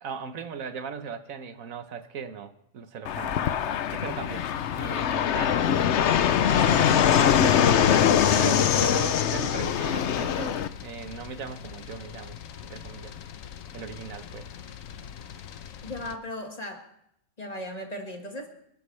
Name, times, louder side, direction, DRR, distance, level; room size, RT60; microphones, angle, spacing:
voice 1, 0.0-3.4 3.9-4.4 4.7-5.6 6.5-12.4 12.6-13.1 13.7-14.5, right 6 dB, 85° right, 9 dB, 1.4 m, -38 dB
Fixed-wing aircraft airplane, 3.0-10.7, left 9 dB, 65° left, 0.9 m, -22 dB
sound 1, 8.5-16.2, left 8 dB, 85° left, 1.2 m, -43 dB
voice 2, 15.8-16.9 17.4-18.5, left 1 dB, 30° left, 3 dB, 1.9 m, -37 dB
26.5 x 11.5 x 3.3 m, 0.76 s
omnidirectional pair, 1.4 m